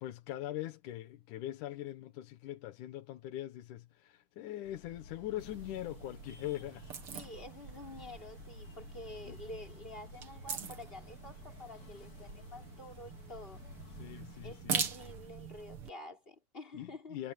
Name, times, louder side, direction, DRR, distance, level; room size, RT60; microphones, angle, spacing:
voice 1, 0.0-6.9 9.2-9.4 13.9-14.8 16.7-17.3, left 14 dB, 85° left, 2.7 m, -42 dB
sound 1, 4.6-14.7, left 4 dB, 65° left, 4.1 m, -54 dB
sound 2, 5.4-15.9, right 7 dB, 50° right, 2.6 m, -43 dB
voice 2, 7.1-13.6 14.4-17.2, left 1 dB, 15° left, 5.4 m, -49 dB
omnidirectional pair, 3.5 m